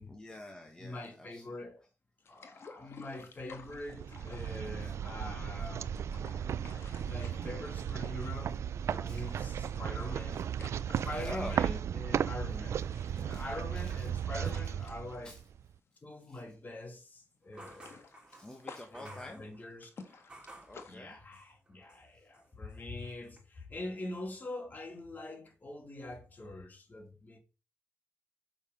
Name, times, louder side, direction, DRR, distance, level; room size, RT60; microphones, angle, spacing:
voice 1, 0.1-1.6 2.5-2.6 4.8-4.9 9.1-9.4 10.3-10.4 10.9-11.8 12.9-13.4 13.8-14.1 15.2-15.4 16.2-16.4 18.3-19.4 20.7-21.2 22.1-22.3, left 1 dB, 15° left, 1.4 m, -47 dB
voice 2, 0.8-1.8 2.3-5.9 7.0-10.5 10.9-12.8 13.2-15.3 16.0-18.0 18.9-19.9 20.9-27.4, left 2 dB, 35° left, 2.4 m, -44 dB
sound 1, 2.2-5.3 5.8-8.6 8.9-11.7 12.1-12.2 12.6-16.4 16.7-16.9 17.2-21.0, left 4 dB, 55° left, 1.4 m, -53 dB
sound 2, 3.6-15.7, right 8 dB, 70° right, 0.4 m, -35 dB
sound 3, 17.5-20.8 21.3-22.1 22.3-23.4, right 1 dB, 20° right, 3.3 m, -54 dB
6.6 x 5.6 x 5.2 m
cardioid pair, 95°, 5 cm